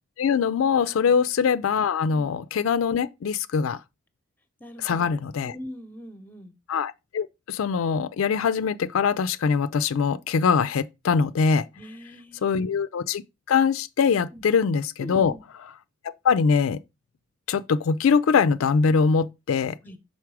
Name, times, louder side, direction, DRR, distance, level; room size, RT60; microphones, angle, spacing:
voice 1, 0.2-3.8 4.8-5.5 6.7-11.6 12.4-13.2 13.5-15.3 16.0-16.8 17.5-19.8, left 5 dB, 80° left, 0.4 m, -23 dB
voice 2, 4.6-6.5 11.7-12.8 14.3-14.4 15.0-15.4 19.8-20.0, equal, 10° left, 0.8 m, -43 dB
5.9 x 4.1 x 4.7 m
head